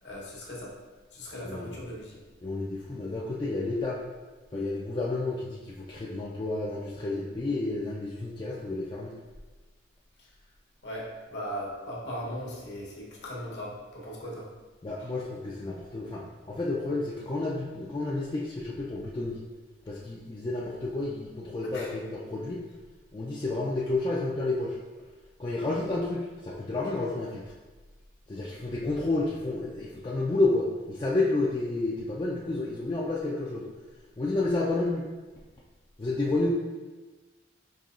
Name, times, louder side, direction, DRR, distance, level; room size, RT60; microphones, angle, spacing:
voice 1, 0.0-0.7 1.1-2.2 10.2-10.3 10.8-14.5 15.0-15.1 21.7-21.9, equal, 70° left, -3 dB, 1.0 m, -38 dB
voice 2, 2.4-4.0 4.5-9.1 14.8-19.4 19.9-22.6 23.1-24.8 25.4-27.5 28.3-33.7 34.2-35.1 36.0-36.5, left 2 dB, 25° left, -5 dB, 0.3 m, -30 dB
5.4 x 2.7 x 2.4 m, 1.3 s
head